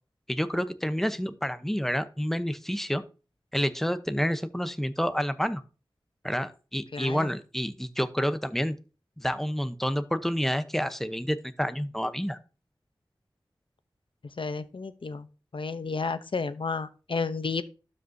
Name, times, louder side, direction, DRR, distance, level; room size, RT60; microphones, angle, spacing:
voice 1, 0.3-3.0 3.5-5.6 6.2-8.8 9.2-12.4, equal, 5° left, 11 dB, 0.8 m, -29 dB
voice 2, 6.9-7.3 14.2-15.3 15.5-17.6, left 4 dB, 70° left, 12 dB, 0.7 m, -32 dB
12.0 x 5.3 x 2.7 m, 0.35 s
wide cardioid pair, 45°, 9 cm